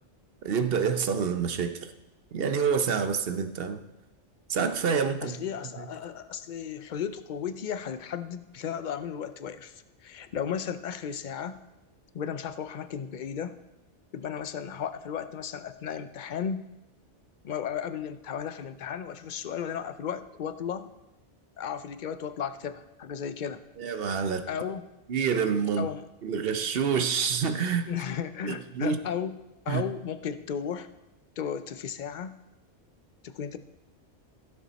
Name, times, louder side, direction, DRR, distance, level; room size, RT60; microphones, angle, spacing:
voice 1, 0.4-1.9 2.3-3.8 4.5-5.4 23.8-24.5 25.1-25.9 26.2-27.9 28.4-29.0 29.7-29.8, right 6 dB, 55° right, 9 dB, 0.9 m, -27 dB
voice 2, 5.2-9.7 10.0-11.6 12.1-13.6 14.1-16.7 17.4-20.9 21.6-23.6 24.5-24.9 25.8-26.0 27.9-29.4 29.7-30.9 31.4-32.4 33.2-33.6, left 8 dB, 55° left, 12 dB, 0.6 m, -34 dB
16.0 x 6.9 x 4.1 m, 0.98 s
omnidirectional pair, 1.2 m